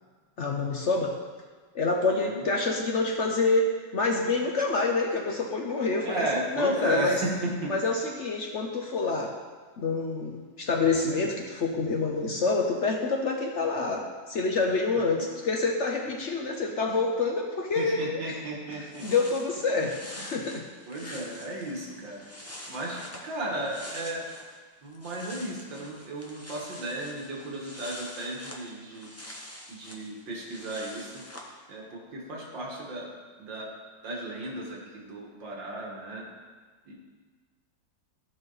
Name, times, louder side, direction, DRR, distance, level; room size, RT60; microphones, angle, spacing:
voice 1, 0.4-1.1 1.7-6.2 6.5-7.2 7.7-9.3 9.8-18.4 19.0-19.9 20.2-20.6 21.0-21.2, left 3 dB, 55° left, 1 dB, 0.8 m, -27 dB
voice 2, 2.1-2.5 6.0-7.7 15.0-15.1 17.8-19.1 20.9-24.3 24.8-29.1 29.7-31.2 31.7-33.7 34.0-36.3 36.9-37.0, right 1 dB, 75° right, -2 dB, 2.3 m, -34 dB
sound 1, 18.4-18.5 18.7-24.6 24.8-31.5, left 1 dB, 15° left, 0.5 m, -46 dB
14.0 x 5.6 x 4.0 m, 1.5 s
omnidirectional pair, 2.0 m